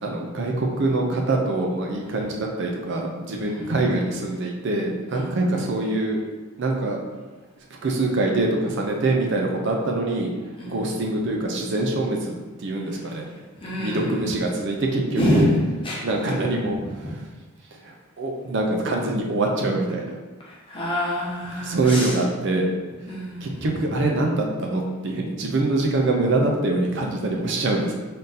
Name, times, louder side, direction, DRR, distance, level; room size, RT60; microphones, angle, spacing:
voice 1, 0.0-6.2 6.6-7.0 7.8-10.3 10.7-13.3 13.8-15.5 16.0-17.2 17.8-20.1 21.6-22.7 23.4-27.9, right 2 dB, 55° right, 1 dB, 0.5 m, -24 dB
voice 2, 13.6-14.1 15.2-16.4 20.4-22.1 23.1-23.7, equal, 25° left, -5 dB, 0.9 m, -26 dB
3.7 x 2.7 x 3.9 m, 1.3 s
head